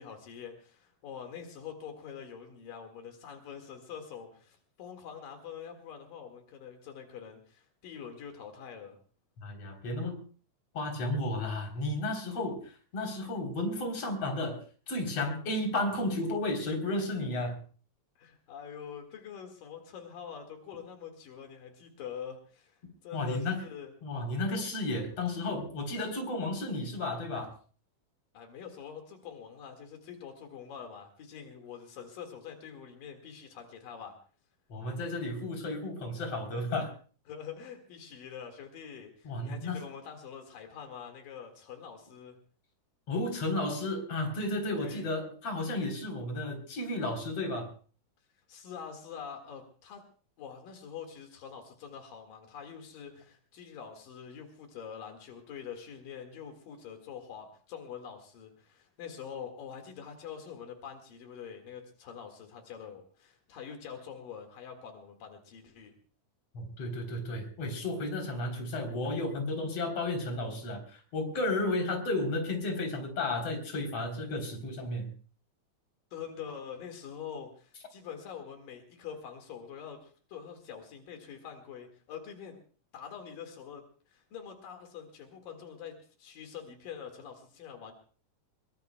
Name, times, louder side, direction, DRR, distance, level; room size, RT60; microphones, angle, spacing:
voice 1, 0.0-9.0 18.2-23.9 28.3-34.1 37.3-42.4 44.8-45.1 48.5-50.0 50.4-65.9 76.1-82.6 82.9-87.9, left 7 dB, 85° left, 4 dB, 3.6 m, -45 dB
voice 2, 9.4-10.2 10.7-14.6 14.9-17.6 23.1-23.6 24.0-27.5 34.7-36.9 39.2-39.8 43.1-47.7 66.5-75.1, left 2 dB, 45° left, 3 dB, 4.6 m, -33 dB
24.0 x 23.0 x 2.3 m, 0.40 s
omnidirectional pair, 3.8 m